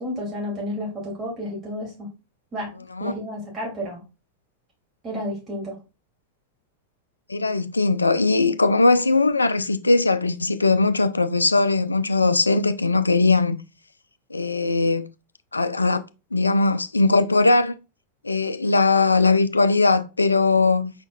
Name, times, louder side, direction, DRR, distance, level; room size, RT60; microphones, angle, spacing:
voice 1, 0.0-2.1 2.5-2.7 3.0-4.0 5.0-5.8, left 1 dB, 25° right, 2.4 m, -31 dB
voice 2, 7.3-13.6 14.3-15.1 15.5-16.0 16.3-17.7 18.2-20.9, left 3 dB, 80° left, 0.3 m, -20 dB
5.0 x 4.4 x 2.2 m
figure-of-eight pair, 90°, 0 cm